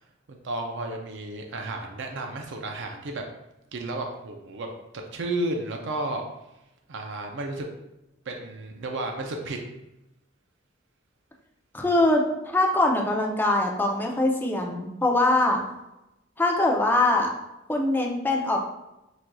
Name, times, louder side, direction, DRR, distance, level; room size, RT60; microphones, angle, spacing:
voice 1, 0.3-3.2 3.7-4.7 4.9-6.2 6.9-7.7 8.3-9.6, right 2 dB, 65° right, 3 dB, 0.5 m, -32 dB
voice 2, 11.7-15.6 16.4-17.3 17.7-18.6, left 2 dB, 10° left, 0 dB, 0.5 m, -23 dB
5.9 x 2.5 x 2.3 m, 0.92 s
head